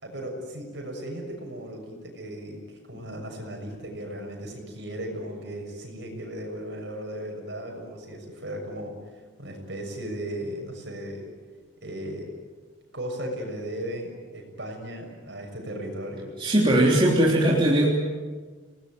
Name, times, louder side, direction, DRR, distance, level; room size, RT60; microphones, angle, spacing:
voice 1, 0.0-11.2 11.8-12.3 12.9-16.3, right 1 dB, 60° right, 2 dB, 6.7 m, -36 dB
voice 2, 16.4-17.9, right 1 dB, 25° right, -3 dB, 3.5 m, -19 dB
29.0 x 19.0 x 9.4 m, 1.4 s
head